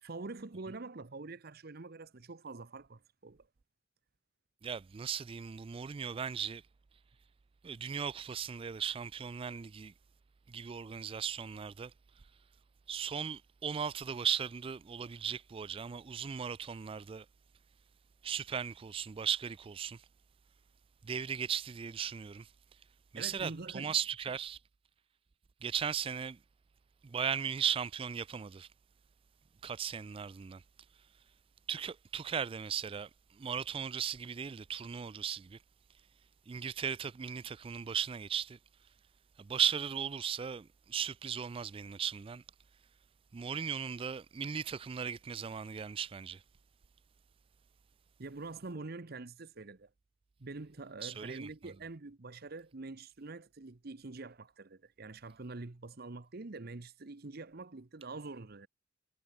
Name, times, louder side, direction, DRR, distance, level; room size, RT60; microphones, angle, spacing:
voice 1, 0.0-3.4 23.1-23.9 48.2-49.9 50.4-58.7, right 3 dB, 55° right, 0.9 m, -45 dB
voice 2, 4.6-6.6 7.6-9.9 10.5-11.9 12.9-17.3 18.2-20.0 21.0-22.5 23.1-24.6 25.6-26.4 27.0-28.7 29.6-30.6 31.7-35.6 36.5-38.6 39.4-42.4 43.3-46.4 51.0-51.5, right 7 dB, 30° right, 0.3 m, -37 dB
head